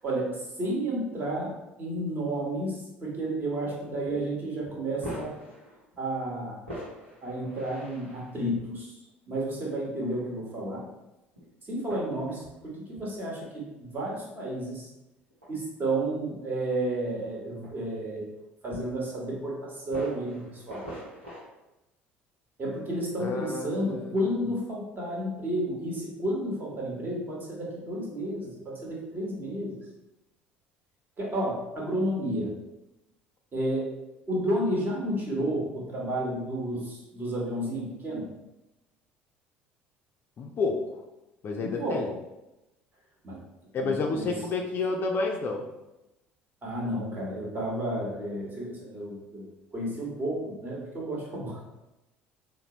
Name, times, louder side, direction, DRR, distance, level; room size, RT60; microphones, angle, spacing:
voice 1, 0.0-1.5 1.8-5.4 6.0-6.6 7.2-9.0 9.3-10.8 11.6-14.9 15.5-18.2 18.6-20.8 22.6-29.8 31.2-32.5 33.5-33.9 34.3-38.3 41.6-42.0 43.2-43.4 43.7-44.3 46.6-49.4 49.7-51.6, right 1 dB, 30° right, -3 dB, 1.2 m, -31 dB
sound 1, 4.1-4.2 4.7-6.0 6.6-8.7 9.7-10.3 10.7-10.8 11.4-11.5 11.9-12.6 12.9-13.2 14.2-14.3 15.2-15.5 16.3-16.4 16.8-16.9 17.4-18.4 18.7-19.3 19.8-21.5, equal, 85° right, 0.8 m, -43 dB
voice 2, 23.2-24.1 40.4-40.9 41.4-42.1 43.7-45.6, left 3 dB, 35° left, 2 dB, 0.4 m, -29 dB
3.9 x 2.0 x 2.9 m, 0.97 s
figure-of-eight pair, 60°, 6 cm